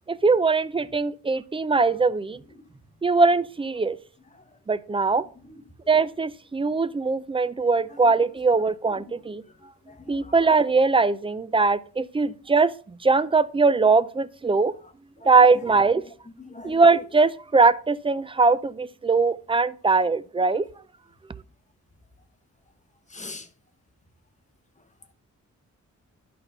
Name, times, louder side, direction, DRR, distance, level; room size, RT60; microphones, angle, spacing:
voice 1, 0.1-2.4 3.0-4.0 4.7-5.2 5.9-9.4 10.1-14.7 15.2-16.0 16.6-20.7, right 4 dB, 20° right, 0.4 m, -21 dB
voice 2, 9.9-10.4 15.2-15.5 16.4-16.8 23.1-23.5, left 2 dB, 25° left, 1.1 m, -42 dB
11.0 x 4.2 x 5.4 m
wide cardioid pair, 115°, 30 cm